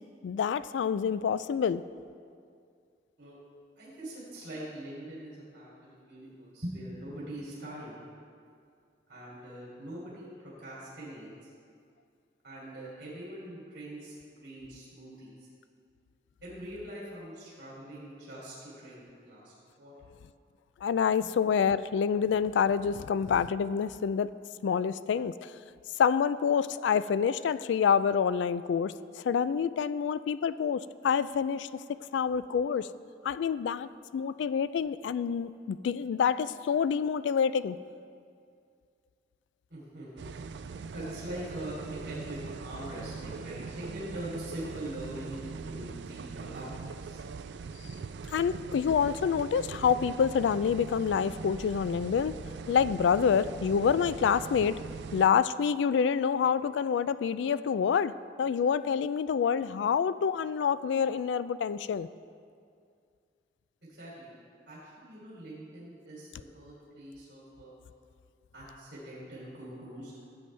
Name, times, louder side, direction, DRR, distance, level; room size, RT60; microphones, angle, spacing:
voice 1, 0.2-1.8 20.8-24.3 24.6-25.5 26.0-32.9 33.2-37.8 48.3-52.4 52.7-54.8 55.1-58.1 58.4-62.1, left 7 dB, 85° left, 15 dB, 0.3 m, -27 dB
voice 2, 3.8-8.0 9.1-11.5 12.4-15.4 16.4-19.9 21.2-21.3 39.7-40.3 40.9-41.8 42.0-47.2 63.8-64.3 64.7-67.7 68.5-70.1, right 1 dB, 65° right, -7 dB, 2.9 m, -43 dB
sound 1, 40.2-55.3, right 5 dB, 80° right, 0.4 m, -41 dB
16.0 x 7.8 x 3.3 m, 2.3 s
head